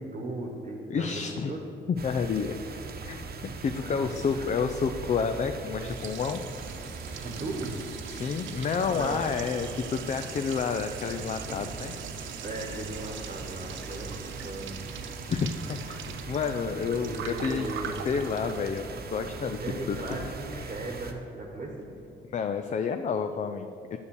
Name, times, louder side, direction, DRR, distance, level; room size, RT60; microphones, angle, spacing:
voice 1, 0.0-1.2 1.5-1.6 4.0-4.5 7.2-7.8 8.9-9.2 12.4-14.8 16.7-18.0 19.6-21.9, right 2 dB, 30° right, 0 dB, 1.2 m, -37 dB
voice 2, 0.9-1.5 1.9-2.6 3.0-6.4 8.1-11.9 15.3-19.6 19.9-20.3 22.3-24.0, left 6 dB, 35° left, 7 dB, 0.4 m, -30 dB
sound 1, 2.0-21.1, right 4 dB, 50° right, 1.0 m, -40 dB
Liquid, 5.4-20.6, right 8 dB, 75° right, 0.6 m, -43 dB
7.1 x 6.6 x 7.0 m, 2.8 s
cardioid pair, 90°, 20 cm